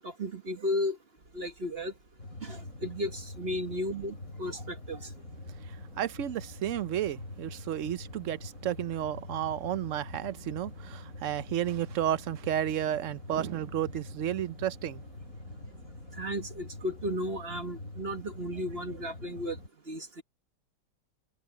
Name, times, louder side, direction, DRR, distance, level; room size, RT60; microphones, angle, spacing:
voice 1, 0.0-1.0 1.3-1.9 2.4-5.1 16.2-19.6 19.9-20.2, left 1 dB, 40° right, 1.4 m, -34 dB
sound 1, 1.2-19.4, right 2 dB, 90° right, 6.1 m, -62 dB
sound 2, 2.2-19.7, left 2 dB, 50° left, 4.2 m, -45 dB
voice 2, 5.6-15.0, right 11 dB, 60° right, 0.9 m, -32 dB
omnidirectional pair, 1.8 m